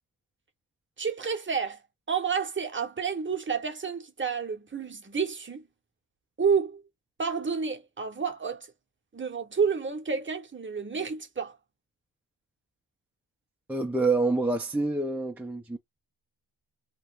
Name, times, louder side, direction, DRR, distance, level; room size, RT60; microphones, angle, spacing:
voice 1, 1.0-1.8 2.1-5.6 6.4-6.8 7.2-8.7 9.1-11.6, right 6 dB, 25° right, 0.7 m, -30 dB
voice 2, 13.7-15.8, right 3 dB, 5° right, 0.4 m, -27 dB
2.9 x 2.7 x 3.3 m
wide cardioid pair, 140°, 48 cm